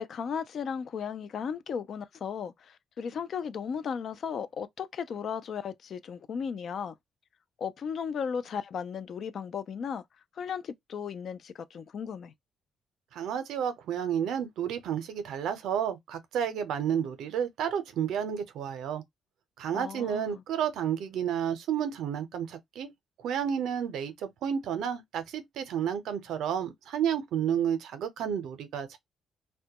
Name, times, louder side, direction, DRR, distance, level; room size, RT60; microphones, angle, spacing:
voice 1, 0.0-6.9 7.6-10.0 10.4-12.3 19.7-20.4, left 7 dB, 60° left, 0.3 m, -35 dB
voice 2, 13.1-19.0 19.6-22.9 23.2-29.0, right 8 dB, 80° right, 0.5 m, -31 dB
2.1 x 2.1 x 2.7 m
cardioid pair, 90°, 0 cm